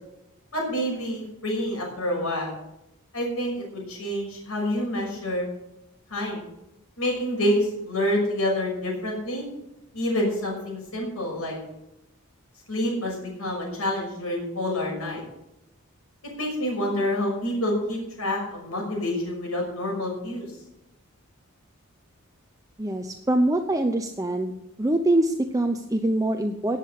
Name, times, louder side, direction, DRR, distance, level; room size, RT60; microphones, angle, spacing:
voice 1, 0.5-2.5 3.1-5.5 6.1-6.5 7.0-9.4 9.9-11.6 12.7-15.2 16.4-20.5, left 1 dB, 80° left, -1 dB, 6.2 m, -27 dB
voice 2, 22.8-24.5 24.8-26.8, right 1 dB, 15° right, 5 dB, 0.7 m, -24 dB
17.5 x 7.7 x 6.6 m, 0.89 s
head